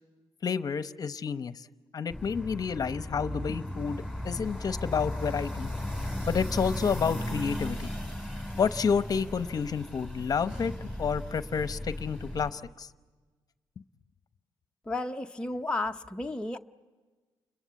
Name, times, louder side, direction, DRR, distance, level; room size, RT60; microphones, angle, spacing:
voice 1, 0.4-1.7 1.9-5.7 6.2-7.9 8.6-12.9, left 6 dB, 45° left, 0.9 m, -30 dB
sound 1, 2.1-12.5, left 1 dB, 5° right, 6.4 m, -36 dB
voice 2, 14.9-16.6, left 2 dB, 10° left, 0.7 m, -33 dB
29.5 x 22.0 x 8.3 m
cardioid pair, 100°, 9 cm